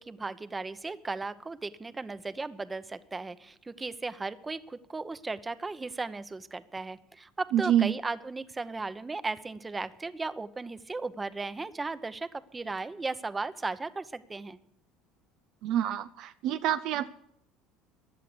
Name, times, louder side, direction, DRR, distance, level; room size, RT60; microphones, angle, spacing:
voice 1, 0.0-14.6, right 3 dB, 20° right, 13 dB, 0.9 m, -36 dB
voice 2, 7.5-7.9 15.6-17.1, right 11 dB, 60° right, 10 dB, 0.5 m, -27 dB
16.0 x 11.0 x 6.9 m, 0.77 s
hypercardioid pair, 70°, 0 cm